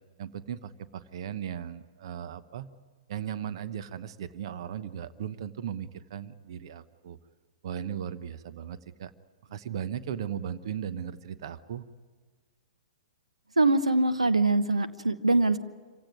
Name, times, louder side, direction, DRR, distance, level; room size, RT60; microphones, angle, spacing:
voice 1, 0.2-2.7 3.1-7.2 7.6-9.1 9.5-11.9, right 9 dB, 55° right, 13 dB, 1.0 m, -37 dB
voice 2, 13.6-15.6, right 2 dB, 85° right, 10 dB, 1.0 m, -23 dB
26.5 x 16.5 x 9.6 m, 1.6 s
figure-of-eight pair, 110°, 3 cm